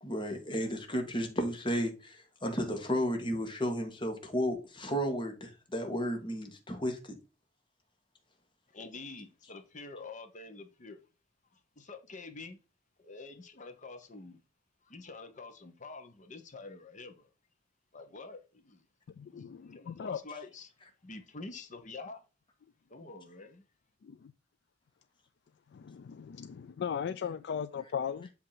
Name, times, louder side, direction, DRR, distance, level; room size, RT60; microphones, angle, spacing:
voice 1, 0.0-7.0, equal, 25° left, 1.4 m, -33 dB
voice 2, 8.7-11.0 11.8-12.6 13.0-14.4 14.9-17.2 17.9-18.8 19.3-19.4 19.7-20.7 21.0-22.2 22.9-23.6, left 3 dB, 45° left, 1.0 m, -47 dB
voice 3, 19.2-20.2 24.0-24.3 25.7-28.3, left 7 dB, 65° left, 0.3 m, -37 dB
7.6 x 2.8 x 5.7 m
head